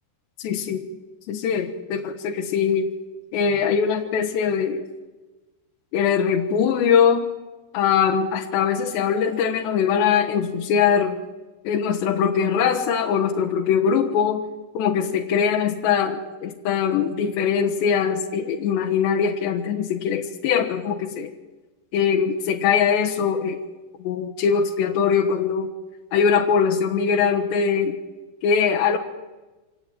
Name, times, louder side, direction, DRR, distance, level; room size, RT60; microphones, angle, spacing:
voice 1, 0.4-0.8 1.3-2.9 3.3-4.8 5.9-7.3 7.7-11.2 11.7-14.4 14.8-21.3 21.9-23.6 24.0-25.7 26.1-28.0 28.4-29.0, left 7 dB, 90° left, 0 dB, 3.6 m, -22 dB
26.0 x 18.5 x 9.0 m, 1.2 s
omnidirectional pair, 4.9 m